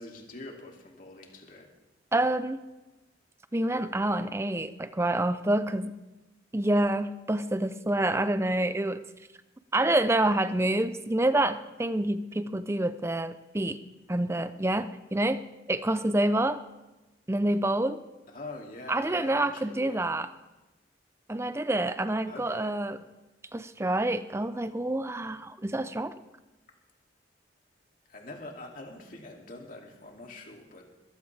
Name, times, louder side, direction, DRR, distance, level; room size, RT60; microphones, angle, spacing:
voice 1, 0.0-1.7 18.3-20.1 22.3-22.8 28.1-30.9, left 2 dB, 45° left, 1 dB, 2.6 m, -44 dB
voice 2, 2.1-2.6 3.5-6.0 6.5-9.0 9.7-13.8 14.1-16.6 17.3-18.0 18.9-20.3 21.3-23.0 23.5-26.1, right 1 dB, 15° right, 12 dB, 0.6 m, -27 dB
21.5 x 15.5 x 3.4 m, 1.1 s
head